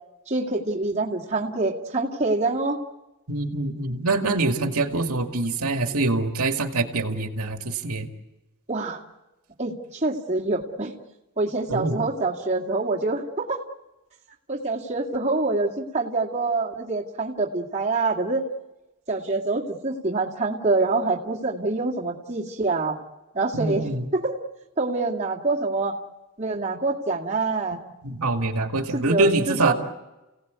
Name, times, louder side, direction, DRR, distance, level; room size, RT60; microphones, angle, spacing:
voice 1, 0.3-2.8 8.7-9.0 9.6-10.9 11.4-13.6 14.5-18.4 19.1-23.0 23.3-24.4 24.8-26.0 26.4-27.8 28.9-29.7, right 3 dB, 30° right, -3 dB, 2.3 m, -26 dB
voice 2, 3.3-8.1 11.7-12.0 23.5-24.1 28.0-29.7, right 2 dB, 85° right, 4 dB, 2.3 m, -24 dB
30.0 x 17.5 x 8.3 m, 1.1 s
head